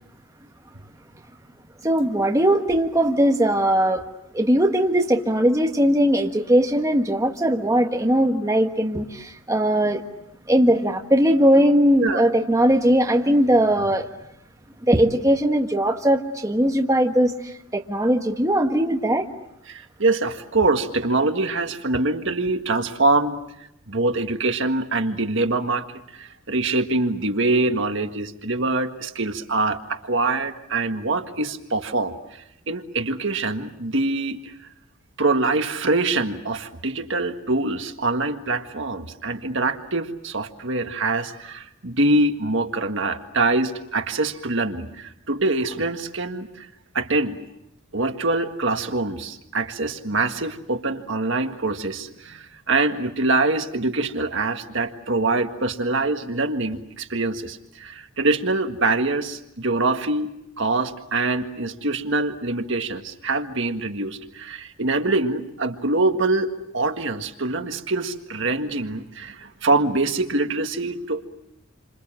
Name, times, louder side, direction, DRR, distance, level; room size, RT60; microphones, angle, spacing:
voice 1, 1.8-4.0 4.3-10.0 10.5-14.1 14.9-19.3, right 1 dB, 15° right, 2 dB, 1.4 m, -19 dB
voice 2, 19.7-23.4 23.9-25.9 26.1-34.7 35.2-46.7 46.9-47.4 47.9-71.3, right 2 dB, 60° right, 6 dB, 1.7 m, -24 dB
28.5 x 27.0 x 7.6 m, 0.81 s
head